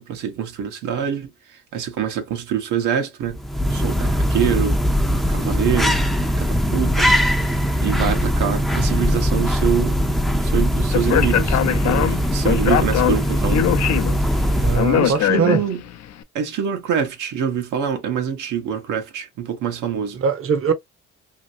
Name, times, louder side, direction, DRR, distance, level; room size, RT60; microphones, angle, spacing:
voice 1, 0.0-3.4 3.7-4.8 5.1-6.0 6.4-10.0 10.4-13.7 14.4-14.7 15.0-15.8 16.3-20.2, right 8 dB, 85° right, 1.0 m, -25 dB
sound 1, 3.3-15.1, equal, ahead, 0.5 m, -20 dB
Speech, 10.9-16.0, left 11 dB, 60° left, 0.5 m, -22 dB
voice 2, 14.6-15.6 20.1-20.7, right 6 dB, 45° right, 0.7 m, -21 dB
2.9 x 2.6 x 2.6 m
cardioid pair, 90°, 30 cm